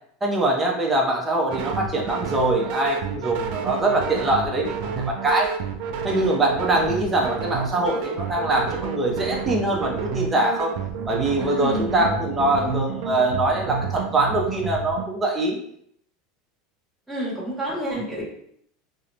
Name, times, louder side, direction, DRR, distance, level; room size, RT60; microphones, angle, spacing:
voice 1, 0.2-5.5 6.0-10.7 11.1-15.6, right 2 dB, 20° right, 0 dB, 0.7 m, -23 dB
sound 1, 1.5-15.1, right 6 dB, 65° right, 0.3 m, -30 dB
voice 2, 11.4-12.9 17.1-18.2, equal, ahead, -8 dB, 1.4 m, -30 dB
2.8 x 2.1 x 2.5 m, 0.68 s
supercardioid pair, 110°, 0 cm